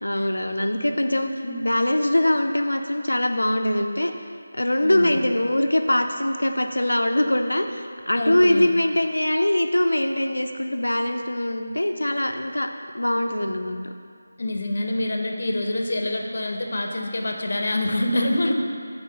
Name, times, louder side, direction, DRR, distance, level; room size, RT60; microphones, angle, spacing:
voice 1, 0.0-1.4 1.6-4.1 4.5-13.9, left 1 dB, 90° left, 6 dB, 0.5 m, -23 dB
voice 2, 1.3-1.8 4.8-5.3 8.1-8.7 14.4-18.5, left 1 dB, 60° left, 2 dB, 0.8 m, -26 dB
5.5 x 4.1 x 5.3 m, 2.2 s
figure-of-eight pair, 165°, 0 cm